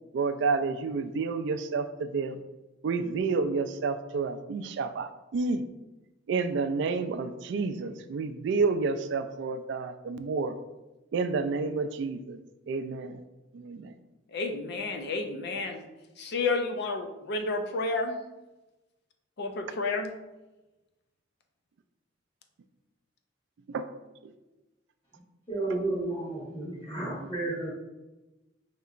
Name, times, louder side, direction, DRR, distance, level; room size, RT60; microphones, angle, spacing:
voice 1, 0.1-2.4 2.8-5.6 6.3-10.6 11.1-12.4 12.7-13.2 13.5-13.9 23.7-23.8 24.2-24.3, right 4 dB, 65° right, 10 dB, 0.3 m, -30 dB
voice 2, 14.3-15.8 16.2-18.2 19.4-20.1, left 3 dB, 60° left, 5 dB, 0.5 m, -31 dB
voice 3, 25.5-27.7, right 2 dB, 25° left, -11 dB, 1.3 m, -32 dB
5.4 x 2.9 x 2.4 m, 1.1 s
head